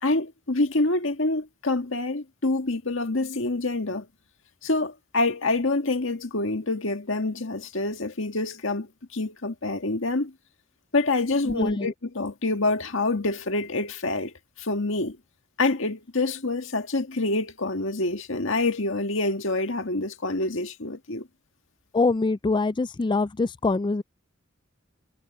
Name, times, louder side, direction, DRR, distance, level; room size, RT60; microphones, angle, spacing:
voice 1, 0.0-4.1 4.6-10.3 10.9-15.2 15.6-21.3, left 2 dB, 65° left, 1.9 m, -26 dB
voice 2, 11.4-11.9 21.9-24.0, left 3 dB, 25° left, 0.4 m, -24 dB
head